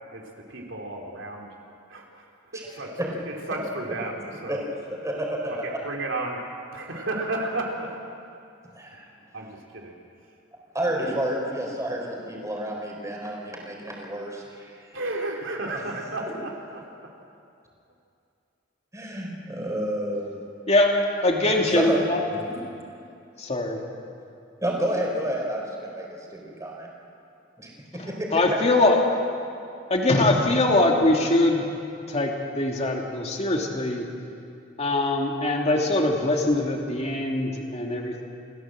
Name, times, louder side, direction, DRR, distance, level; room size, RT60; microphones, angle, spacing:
voice 1, 0.1-1.5 1.9-2.2 2.5-3.0 3.5-4.6 5.6-6.4 6.7-7.9 9.3-9.9 14.9-16.8, right 2 dB, 75° right, 0 dB, 3.1 m, -32 dB
voice 2, 2.5-3.1 4.5-4.6 4.9-5.5 8.8-9.1 10.7-14.9 15.7-15.8 18.9-20.3 21.7-22.1 22.3-22.6 24.6-26.9 27.6-27.7 28.1-28.3, right 1 dB, 15° right, -1 dB, 4.2 m, -30 dB
voice 3, 20.7-22.2 23.4-23.8 28.3-29.0 29.9-31.6 32.1-34.0 34.8-38.2, left 2 dB, 35° left, 1 dB, 2.6 m, -22 dB
28.0 x 15.5 x 7.7 m, 2.6 s
head